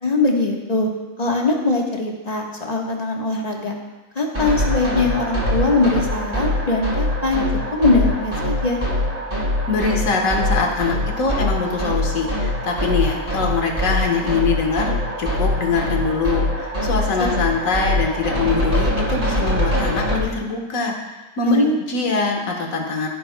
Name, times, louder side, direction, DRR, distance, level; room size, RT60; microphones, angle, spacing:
voice 1, 0.0-0.9 1.2-3.7 4.1-7.4 7.7-8.8 21.4-21.8, left 3 dB, 30° left, -1 dB, 1.5 m, -21 dB
sound 1, 4.3-20.2, left 1 dB, 25° right, 4.3 m, -23 dB
voice 2, 9.7-14.9 15.2-23.1, left 4 dB, 75° left, 1 dB, 1.8 m, -23 dB
16.0 x 9.6 x 2.3 m, 1.2 s
omnidirectional pair, 1.4 m